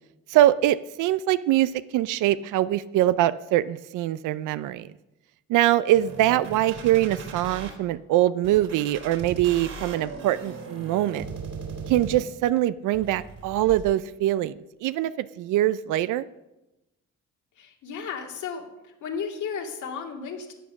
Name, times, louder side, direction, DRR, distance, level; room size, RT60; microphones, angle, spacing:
voice 1, 0.3-4.9 5.5-11.3 11.9-16.3, right 13 dB, 85° right, 15 dB, 0.5 m, -23 dB
sound 1, 5.9-7.7 8.4-12.5 12.9-13.9, right 5 dB, 55° right, 3.2 m, -38 dB
voice 2, 17.6-20.5, left 6 dB, 75° left, 1 dB, 2.5 m, -34 dB
11.5 x 8.5 x 7.1 m, 0.98 s
cardioid pair, 90°, 30 cm